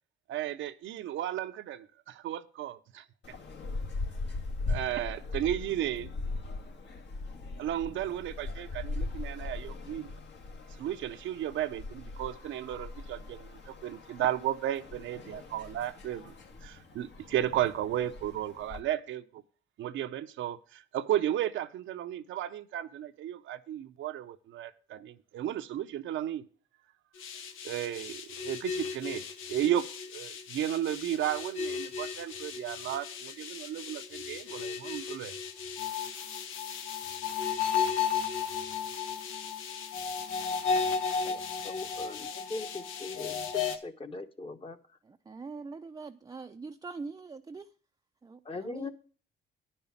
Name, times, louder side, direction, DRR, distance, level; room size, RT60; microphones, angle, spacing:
voice 1, 0.3-3.1 4.7-6.1 7.6-10.1 10.8-16.3 16.6-19.4 19.8-26.4 27.6-35.3, right 11 dB, 75° right, 0.8 m, -34 dB
sound 1, 3.2-18.8, left 3 dB, 65° left, 2.1 m, -40 dB
sound 2, 27.2-43.8, left 6 dB, 90° left, 1.1 m, -34 dB
voice 2, 41.2-44.8 48.4-48.9, left 3 dB, 25° left, 1.2 m, -40 dB
voice 3, 45.0-47.7 48.2-48.9, right 4 dB, 20° right, 0.5 m, -43 dB
10.5 x 5.5 x 7.1 m
cardioid pair, 90°, 20 cm